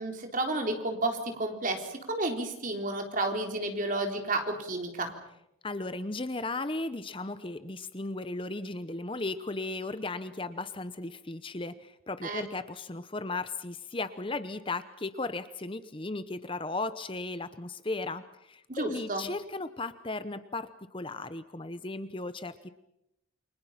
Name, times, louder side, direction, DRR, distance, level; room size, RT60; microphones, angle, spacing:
voice 1, 0.0-5.2 12.2-12.4 18.7-19.3, right 2 dB, 40° right, 4 dB, 3.8 m, -31 dB
voice 2, 5.6-22.7, left 2 dB, 25° left, 12 dB, 0.8 m, -36 dB
29.5 x 24.5 x 5.8 m, 0.80 s
head